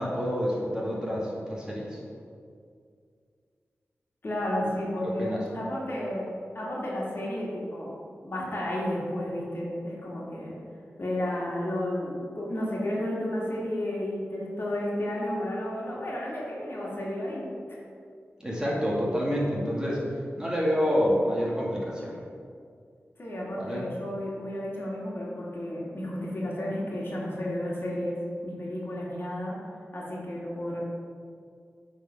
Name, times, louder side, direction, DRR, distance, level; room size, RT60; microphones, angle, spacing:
voice 1, 0.0-2.0 5.0-5.4 18.4-20.0 20.4-22.2 23.6-23.9, equal, 15° right, -5 dB, 2.2 m, -28 dB
voice 2, 4.2-6.3 6.5-7.9 8.2-10.5 11.0-17.5 23.2-29.5 29.9-30.8, left 1 dB, 50° left, -5 dB, 2.2 m, -32 dB
8.7 x 4.3 x 5.9 m, 2.2 s
cardioid pair, 60°, 5 cm